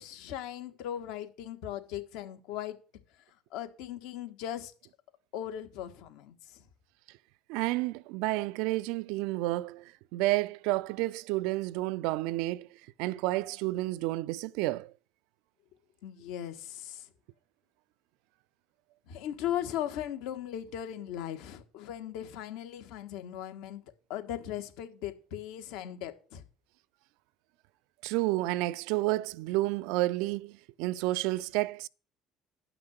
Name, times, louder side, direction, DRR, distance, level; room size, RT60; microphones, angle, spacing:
voice 1, 0.0-2.8 3.5-4.7 5.3-6.6 16.0-17.1 19.1-23.8 24.1-26.4, left 11 dB, 75° left, 1.5 m, -38 dB
voice 2, 7.5-9.8 10.1-12.7 13.0-14.9 28.0-31.9, right 19 dB, 75° right, 0.4 m, -30 dB
9.9 x 5.9 x 6.4 m
hypercardioid pair, 75°, 0 cm